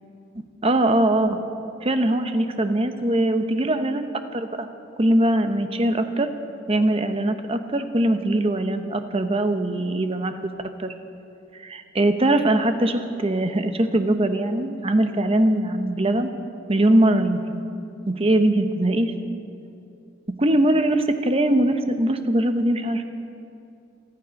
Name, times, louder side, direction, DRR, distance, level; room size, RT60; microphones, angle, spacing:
voice 1, 0.6-1.4 1.8-4.0 4.3-4.7 5.0-6.3 6.7-10.3 10.8-10.9 11.6-16.3 16.7-17.6 18.1-19.1 20.4-23.0, right 1 dB, 30° right, 8 dB, 0.9 m, -21 dB
28.5 x 9.7 x 5.3 m, 2.6 s
head